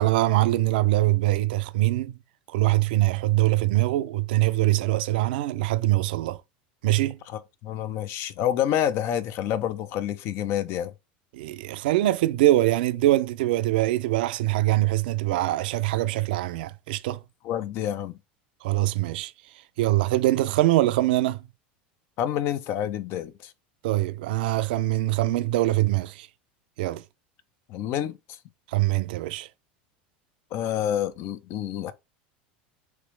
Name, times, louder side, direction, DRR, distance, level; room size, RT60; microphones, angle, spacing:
voice 1, 0.0-2.2 2.5-6.4 6.8-7.2 11.3-17.2 18.6-19.3 19.8-21.4 23.8-26.3 26.8-27.0 28.7-29.5, right 16 dB, 75° right, 0.4 m, -23 dB
voice 2, 7.3-10.9 17.4-18.2 22.2-23.5 27.7-28.2 30.5-31.9, left 10 dB, 55° left, 0.5 m, -28 dB
3.1 x 3.0 x 3.2 m
hypercardioid pair, 100°, 5 cm